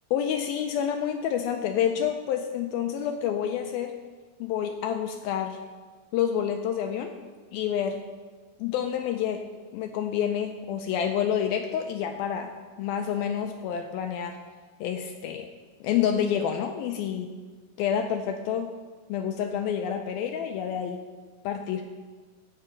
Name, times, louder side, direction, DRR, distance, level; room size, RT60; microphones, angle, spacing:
voice 1, 0.1-3.9 4.4-5.6 6.1-7.1 7.5-8.0 8.6-14.4 14.8-15.5 15.8-17.3 17.8-18.7 19.1-21.0 21.4-21.8, left 8 dB, 85° left, 6 dB, 2.2 m, -28 dB
16.0 x 5.6 x 5.2 m, 1.4 s
omnidirectional pair, 4.8 m